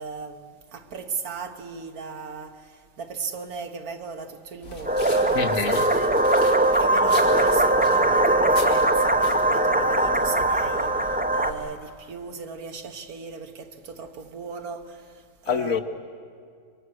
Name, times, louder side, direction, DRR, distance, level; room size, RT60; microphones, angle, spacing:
voice 1, 0.0-6.1 6.7-15.8, right 5 dB, 80° right, 1.8 m, -36 dB
sound 1, 4.6-11.7, left 2 dB, 90° left, 3.2 m, -41 dB
sound 2, 4.9-11.5, right 1 dB, 10° right, 0.5 m, -21 dB
voice 2, 5.3-5.9 15.5-15.8, left 6 dB, 70° left, 1.6 m, -25 dB
26.5 x 23.5 x 6.4 m
omnidirectional pair, 1.5 m